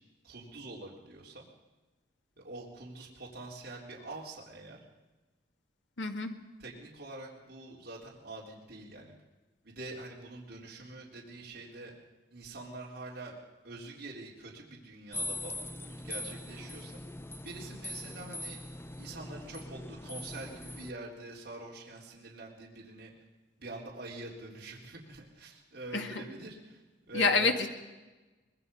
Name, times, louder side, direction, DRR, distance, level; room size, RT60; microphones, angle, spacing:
voice 1, 0.2-1.4 2.4-4.8 6.6-9.1 9.6-11.9 12.3-13.4 13.6-17.0 17.4-18.6 19.0-23.1 23.6-27.6, right 2 dB, 60° right, -3 dB, 3.8 m, -45 dB
voice 2, 6.0-6.3 25.9-26.2 27.1-27.7, left 4 dB, 90° left, 4 dB, 2.0 m, -27 dB
sound 1, 15.1-20.9, left 1 dB, 15° left, 0.8 m, -41 dB
24.5 x 21.0 x 5.6 m, 1.2 s
head